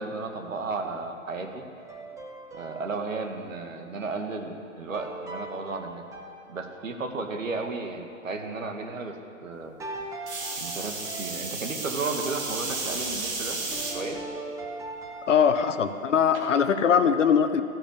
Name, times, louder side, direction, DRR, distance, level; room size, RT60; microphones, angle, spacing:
voice 1, 0.0-1.6 2.5-6.0 6.5-9.2 9.4-9.7 10.6-13.6 13.9-14.2, right 3 dB, 70° right, 4 dB, 2.0 m, -33 dB
sound 1, 1.8-3.3 4.9-7.1 9.8-11.8 13.7-15.7, right 2 dB, 10° right, 1.1 m, -40 dB
sound 2, 10.3-14.0 14.6-15.1 16.3-16.4, right 3 dB, 55° right, 3.3 m, -33 dB
voice 2, 15.3-17.6, left 7 dB, 65° left, 10 dB, 1.0 m, -21 dB
14.0 x 10.0 x 7.0 m, 2.5 s
figure-of-eight pair, 125°, 40 cm